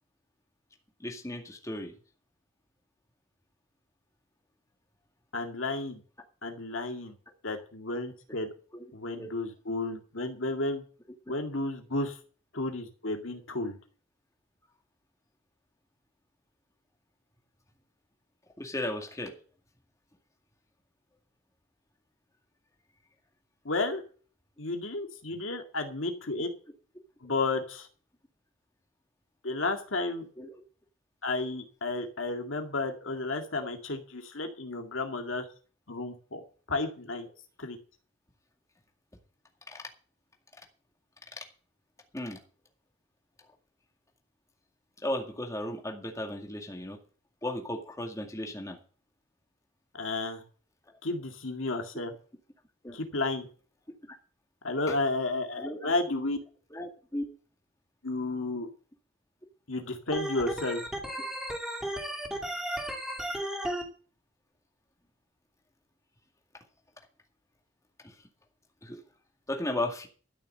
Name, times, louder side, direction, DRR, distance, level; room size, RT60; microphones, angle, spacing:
voice 1, 1.0-2.0 8.7-8.9 9.2-9.3 18.6-19.3 30.4-30.5 39.7-39.8 41.4-41.5 42.1-42.4 45.0-47.0 47.4-48.8 52.8-53.0 54.1-54.2 54.9-55.0 55.5-55.9 56.7-57.3 68.0-68.2 68.8-69.0 69.5-70.1, left 1 dB, 15° left, 2 dB, 2.1 m, -35 dB
voice 2, 5.3-6.0 6.4-7.2 7.4-8.5 8.9-10.8 11.3-12.2 12.5-13.8 23.6-24.0 24.6-26.5 27.2-27.9 29.4-30.3 31.2-35.5 35.9-36.4 36.7-37.3 37.6-37.8 49.9-50.4 51.0-52.1 52.9-53.5 54.6-56.4 58.0-58.7 59.7-60.8, left 2 dB, 70° left, 5 dB, 2.1 m, -32 dB
Organ, 60.1-63.8, right 1 dB, ahead, 2.4 m, -34 dB
13.0 x 6.6 x 7.8 m, 0.40 s
head